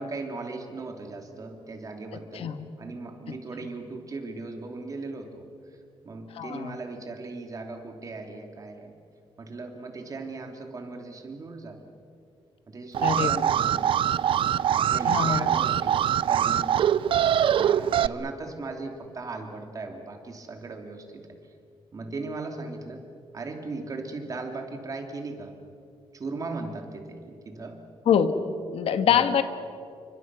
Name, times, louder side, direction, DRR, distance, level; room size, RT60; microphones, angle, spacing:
voice 1, 0.0-2.5 2.8-5.8 6.0-8.9 9.4-11.9 12.7-13.9 14.8-16.0 16.3-16.8 17.5-21.3 21.9-23.0 23.3-25.5 26.1-27.8 29.0-29.2, right 3 dB, 35° right, 4 dB, 3.0 m, -38 dB
voice 2, 2.3-2.7 3.3-3.4 6.3-6.8 13.0-13.5 15.0-15.5 28.0-28.4 28.7-29.4, left 8 dB, 70° left, 10 dB, 1.6 m, -24 dB
Alarm, 12.9-18.1, right 10 dB, 60° right, 0.5 m, -23 dB
29.5 x 25.0 x 6.2 m, 2.5 s
wide cardioid pair, 155°, 10 cm